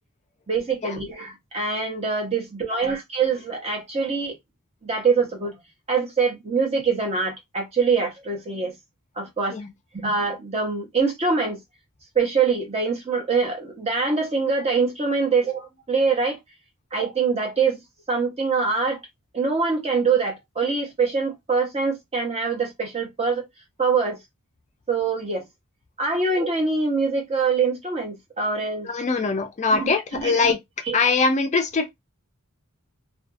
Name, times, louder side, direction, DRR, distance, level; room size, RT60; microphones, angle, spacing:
voice 1, 0.5-4.4 4.8-5.6 5.9-8.7 9.2-9.6 9.9-11.6 12.1-16.4 16.9-17.8 18.1-19.0 19.3-23.5 23.8-24.2 24.9-25.4 26.0-28.9 29.7-30.4 30.9-31.0, right 4 dB, 30° right, 0.8 m, -24 dB
voice 2, 28.8-30.6 30.9-31.9, left 4 dB, 30° left, 0.4 m, -22 dB
2.5 x 2.3 x 2.5 m
head